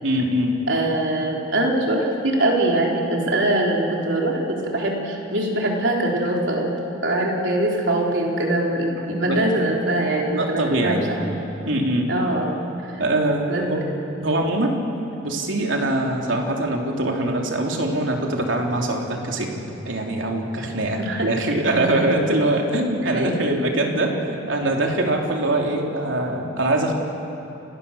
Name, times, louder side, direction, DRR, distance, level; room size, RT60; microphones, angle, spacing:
voice 1, 0.0-0.6 9.0-9.4 10.3-11.0 11.7-12.1 13.0-13.8 14.2-14.8 15.2-24.2 24.5-26.9, right 1 dB, 85° right, 1 dB, 3.1 m, -23 dB
voice 2, 0.7-6.7 7.0-11.3 12.1-13.0 13.5-13.6 21.0-21.3 23.1-23.3, right 1 dB, 70° right, -1 dB, 4.1 m, -23 dB
28.5 x 19.5 x 7.0 m, 2.9 s
head